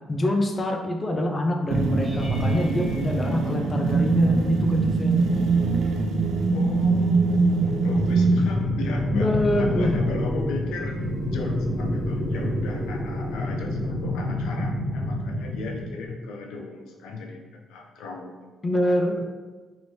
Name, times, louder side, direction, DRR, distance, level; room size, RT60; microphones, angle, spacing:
voice 1, 0.1-5.3 9.1-10.0 18.6-19.2, left 1 dB, 25° left, 2 dB, 0.4 m, -25 dB
sound 1, 1.7-8.5, right 4 dB, 75° right, 0.4 m, -23 dB
sound 2, 2.0-4.3 5.0-5.4 5.8-6.0 10.3-10.4, right 2 dB, 35° right, 1.0 m, -35 dB
voice 2, 6.5-18.3 19.2-19.3, left 3 dB, 90° left, 0 dB, 0.5 m, -36 dB
sound 3, 7.8-15.8, left 1 dB, 55° left, 1.1 m, -28 dB
2.8 x 2.7 x 3.1 m, 1.3 s
cardioid pair, 90°, 0 cm